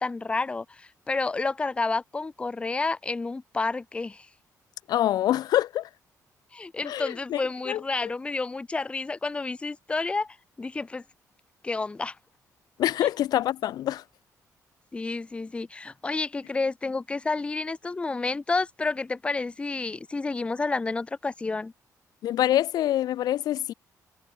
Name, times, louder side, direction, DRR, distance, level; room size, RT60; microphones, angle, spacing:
voice 1, 0.0-4.3 6.5-11.0 11.6-12.2 14.9-21.7, left 3 dB, 15° left, 0.4 m, -30 dB
voice 2, 4.9-5.9 6.8-7.4 7.7-8.1 12.8-14.0 22.2-23.7, left 12 dB, 80° left, 0.4 m, -25 dB
cardioid pair, 115°, 7 cm